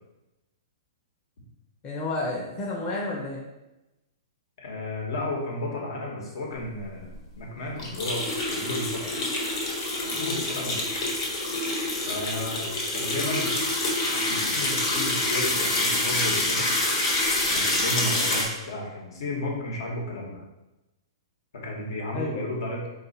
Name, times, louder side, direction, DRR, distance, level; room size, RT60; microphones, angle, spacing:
voice 1, 1.8-3.4 10.1-10.3 22.1-22.5, left 2 dB, 25° left, -4 dB, 0.7 m, -31 dB
voice 2, 4.6-7.1 7.4-8.2 8.5-9.1 10.0-11.0 12.1-13.6 14.1-16.7 17.4-20.4 21.6-22.9, left 1 dB, 75° left, -2 dB, 1.3 m, -33 dB
sound 1, 6.8-6.9 7.1-7.2 7.8-18.4, left 2 dB, 50° left, 1.3 m, -27 dB
3.9 x 2.7 x 4.1 m, 1.0 s
hypercardioid pair, 150°, 3 cm